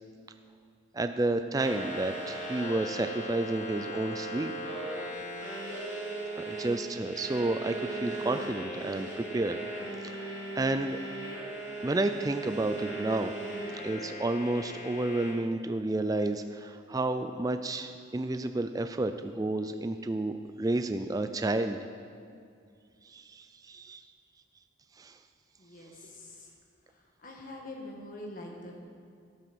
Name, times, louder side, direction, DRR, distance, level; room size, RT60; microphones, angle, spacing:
voice 1, 0.9-4.5 6.4-9.6 10.0-11.0 11.8-13.3 13.8-20.3 20.6-21.8 23.1-24.0 25.0-25.2, right 2 dB, 20° right, 8 dB, 0.3 m, -31 dB
sound 1, 1.6-15.3, right 1 dB, 75° left, 3.3 m, -38 dB
voice 2, 25.6-26.5 27.2-28.9, left 1 dB, 40° left, 0 dB, 1.7 m, -44 dB
13.0 x 8.9 x 6.2 m, 2.3 s
head